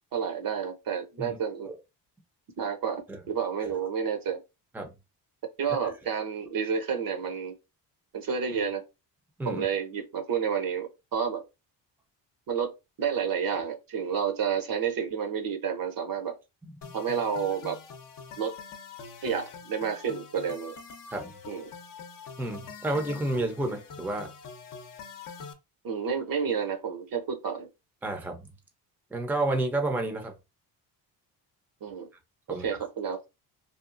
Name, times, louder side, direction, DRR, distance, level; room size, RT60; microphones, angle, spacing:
voice 1, 0.1-1.7 2.6-3.0 3.3-4.4 5.6-7.5 8.1-8.8 9.4-11.4 12.5-12.7 13.0-16.3 16.9-17.8 18.4-18.6 19.2-20.7 21.5-21.6 25.8-27.7 31.8-32.1 32.5-33.3, right 7 dB, 50° right, 0.9 m, -30 dB
sound 1, 16.8-25.5, left 5 dB, 45° left, 0.8 m, -45 dB
voice 2, 22.4-24.3 28.0-28.5 29.1-30.3 32.5-32.6, right 2 dB, 5° right, 0.6 m, -30 dB
2.8 x 2.3 x 2.5 m
supercardioid pair, 65°, 46 cm